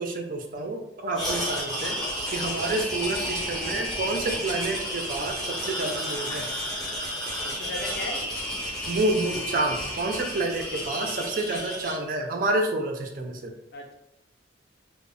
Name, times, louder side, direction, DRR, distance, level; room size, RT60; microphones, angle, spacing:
voice 1, 0.0-2.0 2.3-6.5 8.9-13.5, right 2 dB, 45° right, 3 dB, 0.4 m, -29 dB
sound 1, 1.1-12.0, equal, 5° left, 0.6 m, -32 dB
voice 2, 7.4-8.3 13.7-13.9, left 2 dB, 55° left, 2 dB, 0.5 m, -36 dB
2.0 x 2.0 x 3.7 m, 0.82 s
head